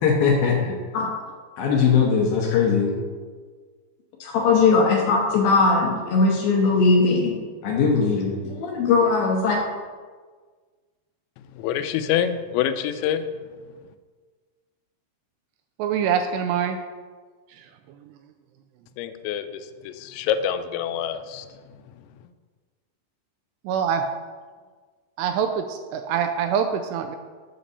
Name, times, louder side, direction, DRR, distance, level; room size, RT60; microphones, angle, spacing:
voice 1, 0.0-1.1 1.6-2.9 4.2-7.4 7.6-9.6, left 4 dB, 70° left, -1 dB, 2.4 m, -20 dB
voice 2, 11.6-13.2 19.0-21.5, left 9 dB, 90° left, 10 dB, 2.9 m, -26 dB
voice 3, 15.8-16.8 17.5-17.7 18.1-18.2 23.6-24.1 25.2-27.2, right 7 dB, 85° right, 6 dB, 2.5 m, -25 dB
8.6 x 6.7 x 4.1 m, 1.5 s
omnidirectional pair, 5.1 m